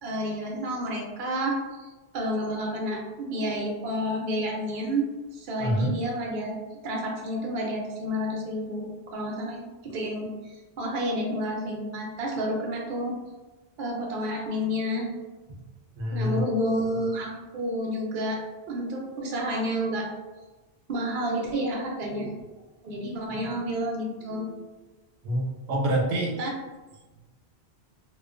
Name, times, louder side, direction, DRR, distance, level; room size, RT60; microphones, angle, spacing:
voice 1, 0.0-5.1 5.3-6.6 6.8-13.2 13.8-15.1 16.1-18.4 18.7-20.1 20.9-22.3 22.8-24.6 26.4-26.5, equal, 60° right, -1 dB, 0.7 m, -30 dB
voice 2, 5.6-5.9 16.0-16.4 25.2-26.4, right 1 dB, 85° right, -1 dB, 0.9 m, -26 dB
2.4 x 2.2 x 2.4 m, 1.2 s
omnidirectional pair, 1.1 m